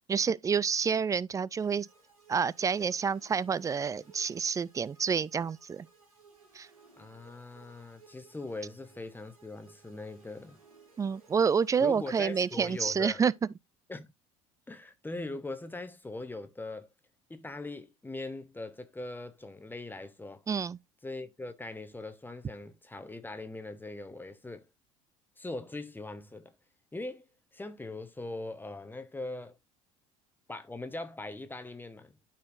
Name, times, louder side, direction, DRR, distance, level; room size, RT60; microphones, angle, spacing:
voice 1, 0.1-1.9 2.3-5.9 6.5-6.7 11.0-13.3 20.5-20.8, right 6 dB, 20° right, 0.3 m, -28 dB
sound 1, 1.6-13.4, right 4 dB, 90° right, 2.4 m, -60 dB
voice 2, 7.0-10.6 11.8-13.2 13.9-14.1 14.7-16.9 17.3-20.4 21.0-24.7 25.4-26.5 26.9-27.3 27.5-29.6 30.5-32.2, left 2 dB, 10° left, 1.0 m, -41 dB
12.5 x 4.4 x 2.5 m
hypercardioid pair, 65°, 17 cm